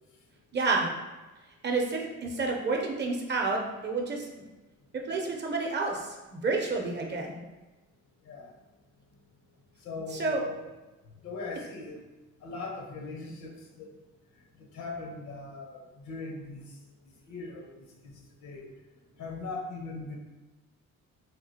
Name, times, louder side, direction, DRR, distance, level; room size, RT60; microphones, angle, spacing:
voice 1, 0.5-0.9 1.6-4.3 4.9-7.4 10.1-10.4, right 3 dB, 35° right, 1 dB, 0.6 m, -29 dB
voice 2, 9.8-10.6 11.2-12.0 12.4-13.5 13.8-13.9 14.7-16.6 17.3-17.7 18.0-18.1 18.4-18.7 19.2-20.2, left 3 dB, 70° left, 1 dB, 0.9 m, -39 dB
3.6 x 2.4 x 2.7 m, 1.1 s
cardioid pair, 90°, 30 cm